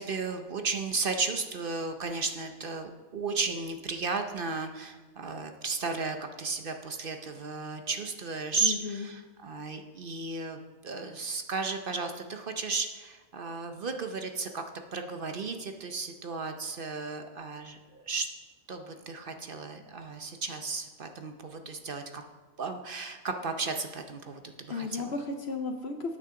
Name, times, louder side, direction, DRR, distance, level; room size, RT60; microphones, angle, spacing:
voice 1, 0.0-14.6 14.9-18.3 18.7-22.2 22.6-25.1, right 4 dB, 50° right, 6 dB, 0.7 m, -34 dB
voice 2, 8.6-9.1 24.7-26.2, left 4 dB, 55° left, 5 dB, 0.9 m, -34 dB
12.5 x 8.8 x 3.7 m, 1.3 s
omnidirectional pair, 1.5 m